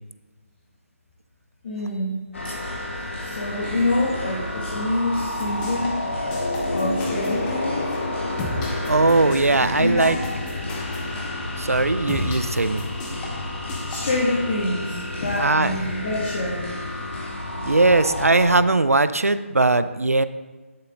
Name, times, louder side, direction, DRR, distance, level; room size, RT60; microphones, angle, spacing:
voice 1, 1.6-2.2 2.4-2.6 3.2-6.0 6.7-7.9 9.8-10.1 13.9-16.6, left 2 dB, 40° left, -5 dB, 1.9 m, -26 dB
sound 1, 2.3-18.6, left 1 dB, 60° left, 2.9 m, -29 dB
sound 2, 5.3-14.2, left 3 dB, 15° left, 1.0 m, -36 dB
voice 2, 8.9-10.2 11.6-12.8 15.4-15.7 17.6-20.2, right 2 dB, 85° right, 13 dB, 0.5 m, -19 dB
11.0 x 6.7 x 3.9 m, 1.3 s
figure-of-eight pair, 150°, 8 cm